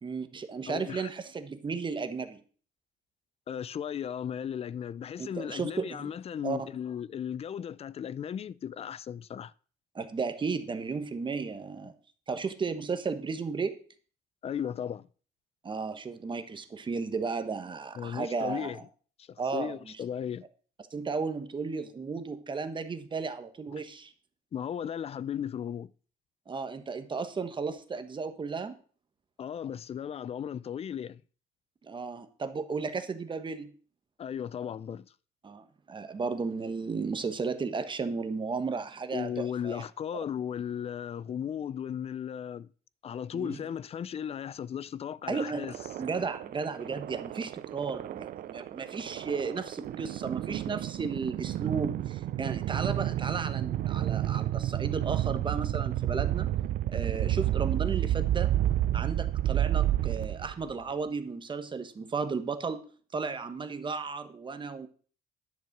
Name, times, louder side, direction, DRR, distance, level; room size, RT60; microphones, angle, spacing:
voice 1, 0.0-2.4 5.2-6.1 6.4-6.7 9.9-11.9 12.3-13.8 15.6-18.8 19.4-19.9 20.9-24.1 26.5-28.7 31.8-33.7 35.4-39.8 43.3-43.6 45.3-45.6 46.0-56.5 56.9-58.5 58.9-62.8 63.1-64.9, right 4 dB, 30° right, 1.2 m, -34 dB
voice 2, 0.7-1.1 3.5-9.5 14.4-15.1 18.0-18.8 19.2-20.4 23.7-23.8 24.5-25.9 29.4-31.2 34.2-35.1 39.1-42.7 43.0-45.7, left 8 dB, 35° left, 0.4 m, -36 dB
sound 1, 45.6-60.7, right 13 dB, 60° right, 0.5 m, -30 dB
10.5 x 6.7 x 5.9 m
cardioid pair, 110°, 17 cm